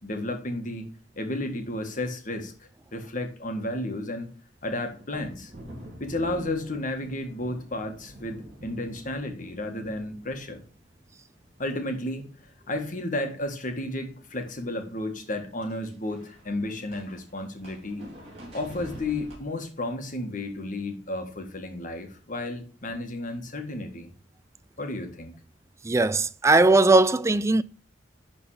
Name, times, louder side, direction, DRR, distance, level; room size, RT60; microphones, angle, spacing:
voice 1, 0.0-2.5 2.9-4.3 4.6-5.5 6.0-10.6 11.6-12.3 12.7-18.1 18.5-24.1 24.8-25.3, left 1 dB, 45° left, 1.7 m, -32 dB
sound 1, 4.9-11.8 12.1-12.8 13.1-19.4, equal, 30° right, 3.7 m, -47 dB
voice 2, 25.8-27.6, right 2 dB, 15° right, 0.4 m, -19 dB
11.5 x 3.9 x 4.8 m
head